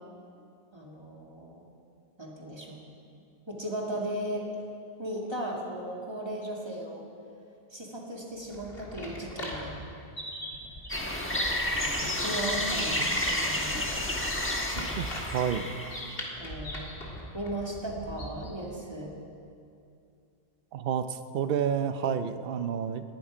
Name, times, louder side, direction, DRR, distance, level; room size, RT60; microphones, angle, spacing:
voice 1, 0.7-1.7 2.2-2.8 3.5-4.5 5.0-7.0 7.7-9.7 11.1-13.9 16.4-16.9 17.3-19.2, right 1 dB, 25° right, -1 dB, 2.1 m, -37 dB
sound 1, 8.4-18.6, equal, 65° left, 2.3 m, -41 dB
sound 2, 10.9-16.2, left 1 dB, 10° left, 1.3 m, -30 dB
voice 2, 14.8-15.7 20.7-23.0, right 8 dB, 65° right, 10 dB, 0.8 m, -30 dB
19.0 x 11.5 x 5.1 m, 2.5 s
omnidirectional pair, 1.1 m